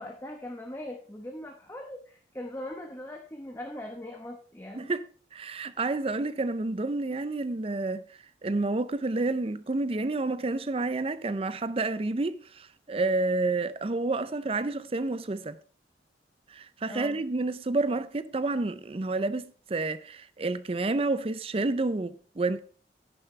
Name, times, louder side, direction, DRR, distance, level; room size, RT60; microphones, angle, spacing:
voice 1, 0.0-4.9 16.9-17.2, left 1 dB, 15° left, 1.0 m, -40 dB
voice 2, 4.7-5.0 5.3-8.0 8.4-15.6 16.5-22.6, right 3 dB, 35° right, 0.5 m, -29 dB
10.5 x 9.8 x 3.2 m
head